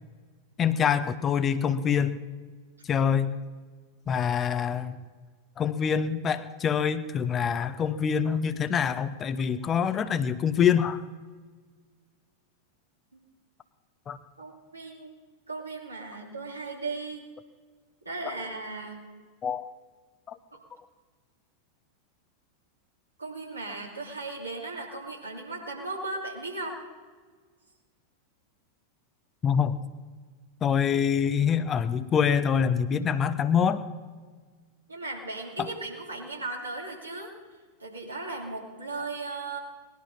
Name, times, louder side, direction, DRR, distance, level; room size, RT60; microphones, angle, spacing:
voice 1, 0.6-2.2 2.8-3.4 4.1-5.0 5.6-11.0 14.1-14.2 19.4-19.6 20.3-20.4 29.4-29.8 30.6-33.8 35.6-35.7, left 7 dB, 25° left, 11 dB, 0.8 m, -25 dB
voice 2, 14.4-15.1 15.5-17.2 18.0-19.0 20.5-20.6 23.2-26.8 34.9-37.3 37.8-39.6, right 3 dB, 80° right, -2 dB, 3.2 m, -36 dB
19.5 x 11.5 x 5.7 m, 1.5 s
figure-of-eight pair, 90°, 0 cm